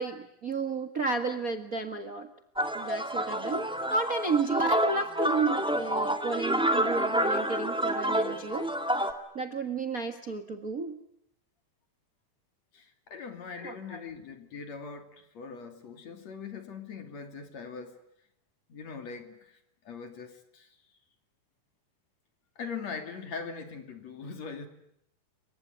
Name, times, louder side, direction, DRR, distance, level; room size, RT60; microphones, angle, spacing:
voice 1, 0.0-2.3 2.7-8.7 9.3-11.0 13.6-14.0, right 4 dB, 35° right, 8 dB, 1.4 m, -32 dB
sound 1, 2.6-9.1, right 1 dB, ahead, 1.7 m, -28 dB
voice 2, 12.7-18.0 18.7-19.6 19.9-20.7 22.6-24.7, left 5 dB, 55° left, 7 dB, 3.8 m, -41 dB
28.0 x 24.5 x 8.2 m, 0.76 s
omnidirectional pair, 3.8 m